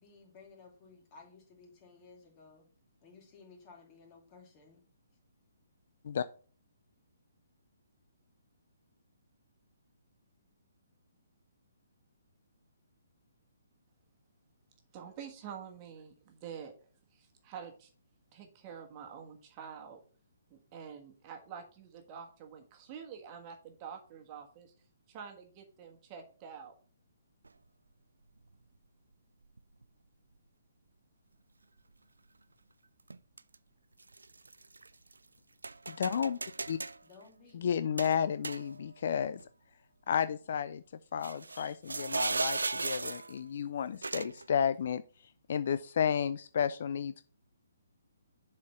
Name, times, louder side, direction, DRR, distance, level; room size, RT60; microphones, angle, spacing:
voice 1, 0.0-2.7 3.0-4.8 37.0-37.6, left 4 dB, 30° left, 2.8 m, -56 dB
voice 2, 14.9-16.7 17.4-17.9 18.3-20.0 20.5-24.7 25.1-26.7, right 7 dB, 30° right, 1.5 m, -47 dB
sound 1, 27.4-27.5 28.5-28.6 29.6-29.8 33.1-33.6 34.0-35.2 35.6-37.0 38.0-39.0 39.4-39.5 41.2-43.4 44.0-44.5, right 3 dB, 85° right, 0.3 m, -37 dB
voice 3, 35.9-36.4 36.7-36.8 37.5-39.4 40.1-40.8 41.1-45.0 45.5-47.2, left 8 dB, 55° left, 0.4 m, -32 dB
7.3 x 4.4 x 5.6 m
figure-of-eight pair, 135°, 0 cm